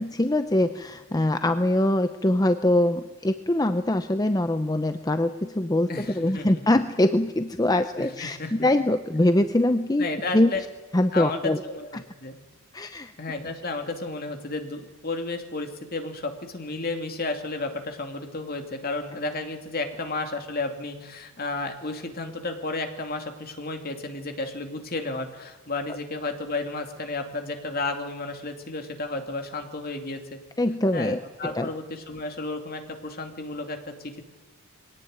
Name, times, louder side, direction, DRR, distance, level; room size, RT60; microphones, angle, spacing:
voice 1, 0.0-10.1 10.3-10.5 10.9-11.6 11.9-12.0 12.7-13.1 30.6-31.7, left 1 dB, 15° left, 9 dB, 0.7 m, -23 dB
voice 2, 5.9-6.7 8.0-8.5 10.0-10.6 11.1-12.4 13.2-30.4 30.9-34.2, left 2 dB, 45° left, 5 dB, 2.8 m, -32 dB
22.5 x 17.5 x 9.6 m, 1.2 s
head